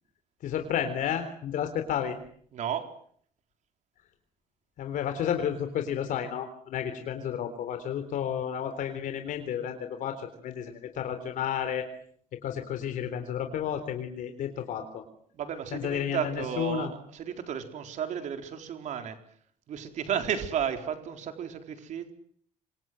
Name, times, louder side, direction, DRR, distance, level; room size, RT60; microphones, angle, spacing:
voice 1, 0.4-2.2 4.8-11.9 12.4-15.0 15.7-16.9, left 9 dB, 70° left, 7 dB, 3.6 m, -32 dB
voice 2, 2.5-2.9 15.3-19.2 19.7-22.1, right 8 dB, 60° right, 7 dB, 4.1 m, -33 dB
27.0 x 25.0 x 7.7 m, 0.63 s
cardioid pair, 165°, 14 cm